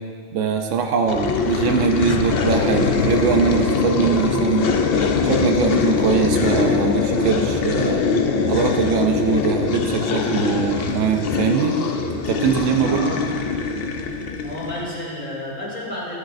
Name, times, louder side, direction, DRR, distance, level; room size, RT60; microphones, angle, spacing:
voice 1, 0.3-4.7 5.2-8.1 8.5-11.8 12.1-13.0, right 6 dB, 90° right, 4 dB, 1.0 m, -22 dB
sound 1, 1.1-15.0, left 4 dB, 60° left, 0.8 m, -22 dB
voice 2, 12.8-13.2 14.4-16.2, left 1 dB, 40° left, -7 dB, 2.9 m, -31 dB
13.0 x 11.0 x 2.5 m, 2.2 s
omnidirectional pair, 1.2 m